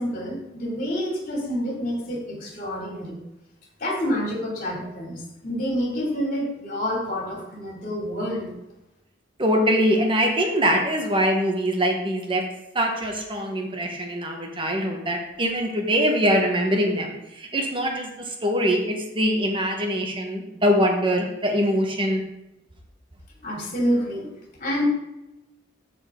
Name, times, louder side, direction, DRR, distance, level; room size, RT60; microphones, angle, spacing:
voice 1, 0.0-3.2 3.8-8.5 23.4-24.3 24.6-24.9, equal, 45° left, -2 dB, 2.9 m, -28 dB
voice 2, 9.4-12.4 12.7-22.2, equal, 25° right, 2 dB, 1.4 m, -23 dB
12.5 x 4.5 x 3.8 m, 0.93 s
head